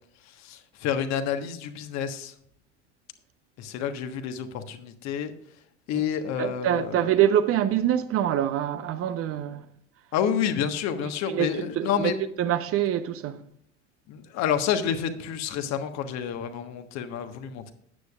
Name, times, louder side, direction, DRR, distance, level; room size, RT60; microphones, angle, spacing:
voice 1, 0.2-2.3 3.6-5.3 5.9-7.0 10.1-12.1 14.1-17.7, left 8 dB, 50° left, 1.4 m, -29 dB
voice 2, 6.4-9.7 11.3-12.1 12.4-13.4, right 10 dB, 40° right, 0.8 m, -25 dB
14.0 x 9.6 x 2.4 m
figure-of-eight pair, 75°, 36 cm